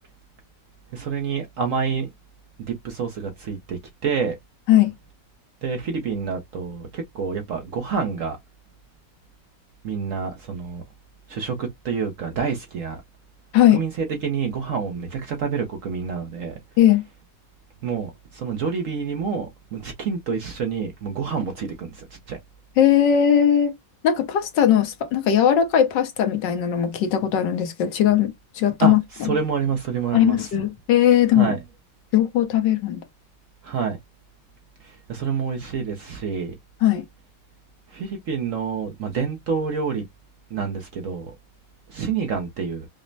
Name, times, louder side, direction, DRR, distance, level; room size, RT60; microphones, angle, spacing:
voice 1, 0.9-2.1 2.7-4.4 5.6-8.4 9.8-10.8 11.3-13.0 13.7-16.6 17.8-22.4 28.8-30.5 31.3-31.6 33.6-34.0 34.8-36.5 37.9-40.0 40.5-41.3 41.9-42.9, right 6 dB, 60° right, 0.8 m, -28 dB
voice 2, 22.8-23.7 24.0-29.0 29.3-29.4 30.1-31.5 32.1-33.0 36.8-37.0, left 10 dB, 75° left, 1.5 m, -19 dB
5.1 x 2.0 x 2.6 m
omnidirectional pair, 2.0 m